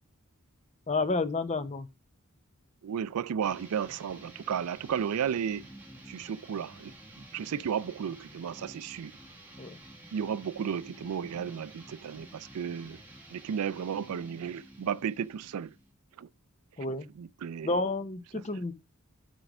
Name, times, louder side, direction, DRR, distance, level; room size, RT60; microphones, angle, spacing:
voice 1, 0.9-1.9 9.6-9.8 16.8-17.1 17.6-18.7, left 3 dB, 30° left, 0.7 m, -30 dB
voice 2, 2.8-5.6 6.1-9.1 10.1-13.0 13.3-15.7 16.2-16.3 17.2-17.7 18.3-18.4, right 8 dB, 80° right, 0.4 m, -34 dB
sound 1, 3.4-15.9, right 1 dB, 10° right, 1.9 m, -51 dB
9.1 x 3.3 x 5.9 m
head